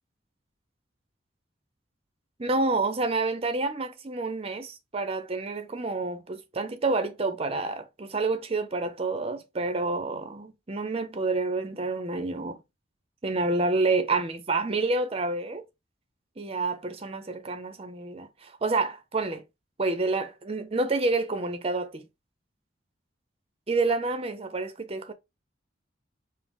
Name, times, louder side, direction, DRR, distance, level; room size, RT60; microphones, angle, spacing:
voice 1, 2.4-12.6 13.2-15.6 16.4-19.4 19.8-22.1 23.7-25.1, right 3 dB, 35° right, 0.6 m, -28 dB
5.1 x 2.0 x 3.4 m
head